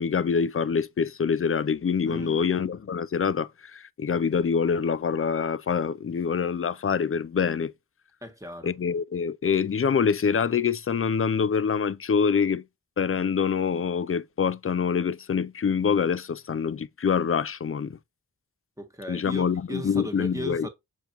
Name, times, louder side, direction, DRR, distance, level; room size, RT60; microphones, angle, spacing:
voice 1, 0.0-7.7 8.6-12.6 13.0-18.0 19.1-20.7, left 6 dB, 35° left, 0.5 m, -25 dB
voice 2, 2.1-2.4 8.2-8.7 18.8-20.7, equal, 10° right, 1.7 m, -37 dB
7.0 x 5.2 x 3.0 m
wide cardioid pair, 60°, 38 cm